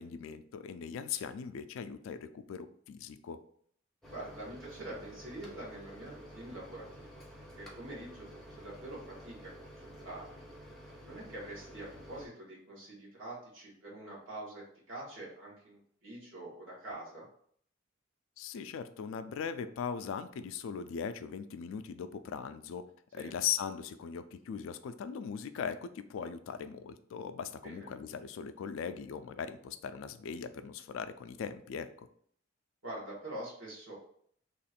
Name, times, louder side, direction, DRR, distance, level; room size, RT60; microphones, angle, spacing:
voice 1, 0.0-3.4 18.4-22.8 23.1-32.1, left 7 dB, 70° left, 10 dB, 0.3 m, -39 dB
Microwave oven, 4.0-12.3, equal, ahead, 0.6 m, -51 dB
voice 2, 4.1-7.2 7.6-10.4 11.0-17.2 23.2-23.3 27.6-27.9 32.8-33.9, right 1 dB, 65° right, -5 dB, 1.4 m, -45 dB
3.0 x 2.4 x 4.2 m, 0.62 s
head